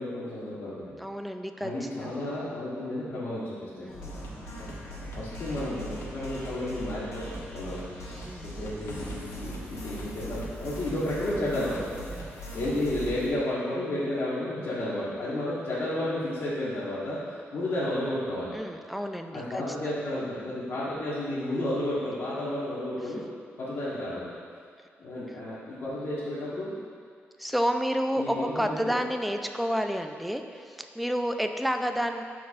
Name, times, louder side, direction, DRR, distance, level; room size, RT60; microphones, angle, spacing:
voice 1, 0.0-0.9 1.6-3.9 4.2-4.8 5.1-7.8 8.4-11.8 12.5-18.5 19.3-23.2 23.6-24.3 25.0-26.7 28.2-29.0, left 1 dB, 60° left, -11 dB, 1.5 m, -32 dB
voice 2, 1.0-2.2 3.8-4.2 8.2-8.5 18.5-19.9 27.4-32.2, equal, ahead, 6 dB, 0.4 m, -30 dB
sound 1, 3.9-13.3, equal, 85° left, 1.4 m, -39 dB
12.5 x 4.6 x 2.5 m, 2.2 s
cardioid pair, 110°, 5 cm